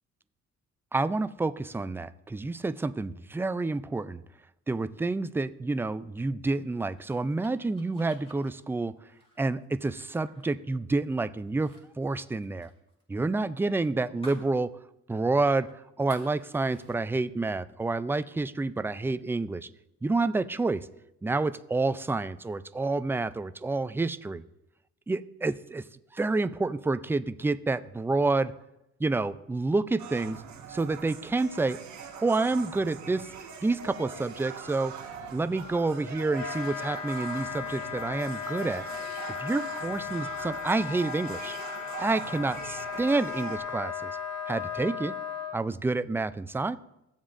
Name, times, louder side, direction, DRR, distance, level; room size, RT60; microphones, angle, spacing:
voice 1, 0.9-4.2 4.7-8.9 9.4-12.7 13.1-14.7 15.1-15.7 16.0-19.7 20.0-20.9 21.2-24.4 25.1-25.8 26.1-28.5 29.0-30.4 30.7-31.8 32.2-33.3 33.6-34.9 35.3-38.9 39.4-41.6 42.0-44.1 44.5-45.1 45.5-46.8, right 3 dB, 10° right, 13 dB, 0.3 m, -28 dB
sound 1, 6.5-11.1 11.5-11.8 12.1-14.5 14.9-15.0 15.4-17.0, equal, 20° left, 2.5 m, -53 dB
sound 2, 30.0-43.6, right 6 dB, 70° right, 1.3 m, -42 dB
Wind instrument woodwind instrument, 36.3-45.6, left 8 dB, 65° left, 1.0 m, -36 dB
16.0 x 7.2 x 2.5 m, 0.87 s
cardioid pair, 90°, 30 cm